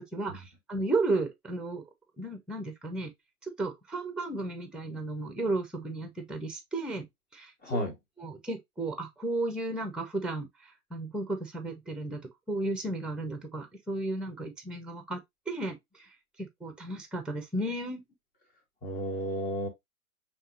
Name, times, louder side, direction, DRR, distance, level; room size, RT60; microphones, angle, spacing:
voice 1, 0.0-1.8 2.2-3.1 3.6-7.0 7.3-7.8 8.2-12.2 12.5-15.2 15.5-16.1 16.4-18.0, right 2 dB, ahead, 1.1 m, -34 dB
voice 2, 7.6-7.9 18.8-19.7, equal, 20° left, 2.0 m, -32 dB
5.3 x 3.2 x 2.7 m
figure-of-eight pair, 100°, 42 cm